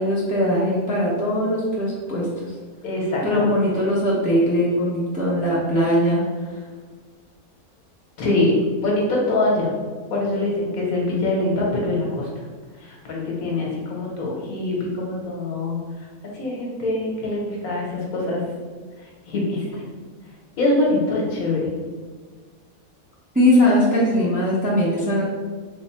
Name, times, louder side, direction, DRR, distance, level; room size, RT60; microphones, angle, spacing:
voice 1, 0.0-2.3 3.2-6.2 6.5-6.6 23.3-25.2, left 1 dB, 10° right, -7 dB, 0.5 m, -20 dB
voice 2, 2.8-3.5 8.2-9.7 10.1-12.4 12.8-16.1 16.3-18.4 19.0-19.9 20.6-21.7, left 2 dB, 70° left, -2 dB, 1.3 m, -24 dB
3.4 x 2.1 x 4.1 m, 1.5 s
omnidirectional pair, 1.6 m